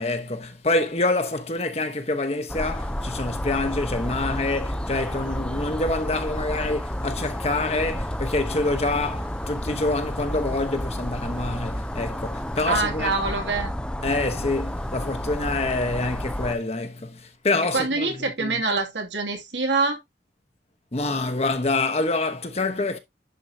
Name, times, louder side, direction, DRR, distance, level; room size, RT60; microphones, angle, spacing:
voice 1, 0.0-13.1 14.0-18.6 20.9-23.0, left 2 dB, 35° left, 1.0 m, -26 dB
sound 1, 2.5-16.6, equal, 5° left, 0.5 m, -31 dB
voice 2, 12.6-13.7 17.7-20.0, right 3 dB, 85° right, 2.4 m, -25 dB
11.0 x 4.7 x 2.8 m
head